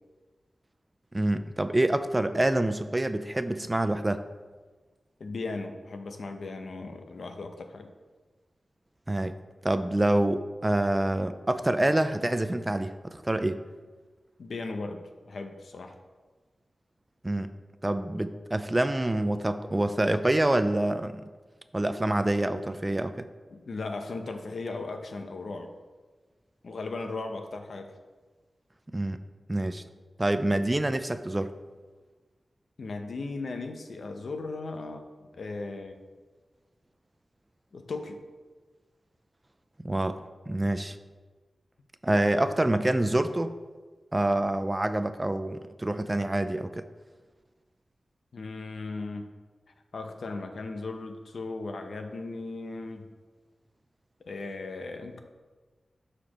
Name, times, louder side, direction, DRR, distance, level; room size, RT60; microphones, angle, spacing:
voice 1, 1.1-4.2 9.1-9.4 9.6-13.6 17.2-17.5 17.8-21.2 21.7-23.3 28.9-29.2 29.5-29.8 30.2-31.5 39.8-41.0 42.0-43.5 44.1-46.8, right 1 dB, 20° right, 10 dB, 0.4 m, -26 dB
voice 2, 5.2-7.9 14.4-16.0 23.5-25.7 26.6-28.0 32.8-35.9 37.7-38.2 48.3-49.3 49.9-53.1 54.2-55.2, left 3 dB, 75° left, 5 dB, 0.7 m, -37 dB
12.5 x 4.3 x 3.0 m, 1.3 s
wide cardioid pair, 75°, 0 cm